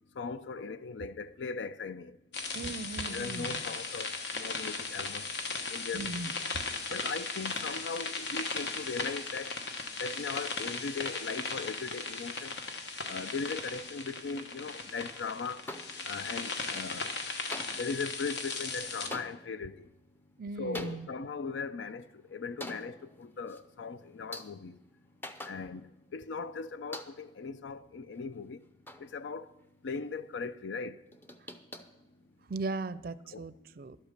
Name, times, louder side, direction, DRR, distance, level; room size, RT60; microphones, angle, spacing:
voice 1, 0.2-2.2 3.1-5.3 5.7-6.3 6.9-9.5 10.0-12.5 13.0-15.6 16.1-17.1 17.8-19.8 20.6-22.1 22.3-24.8 25.5-28.6 29.0-29.5 29.8-31.0 33.3-33.5, left 4 dB, 85° left, 0.5 m, -38 dB
sound 1, 2.3-19.1, left 4 dB, 70° left, 1.2 m, -37 dB
voice 2, 2.5-3.6 5.9-6.3 6.7-6.9 20.4-21.1 32.5-34.0, right 3 dB, 50° right, 0.4 m, -38 dB
sound 2, 15.7-16.4 16.7-17.2 17.5-26.1 26.4-26.5 26.9-27.5 27.9-29.7 30.0-30.4 30.8-32.7, left 1 dB, 10° left, 0.5 m, -48 dB
12.0 x 8.1 x 6.5 m
head